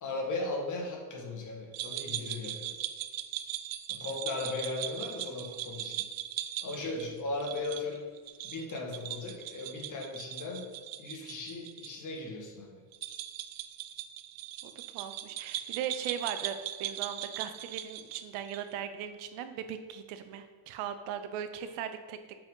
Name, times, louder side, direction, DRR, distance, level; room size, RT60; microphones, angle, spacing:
voice 1, 0.0-2.9 3.9-6.1 6.6-8.1 8.4-10.7 11.0-12.8, left 2 dB, 40° left, 0 dB, 1.6 m, -37 dB
sound 1, 1.7-11.9 12.2-12.3 12.9-18.7, right 12 dB, 50° right, 0.5 m, -39 dB
voice 2, 14.6-22.4, right 9 dB, 85° right, 9 dB, 0.8 m, -39 dB
7.1 x 5.2 x 3.8 m, 1.5 s
cardioid pair, 130°, 47 cm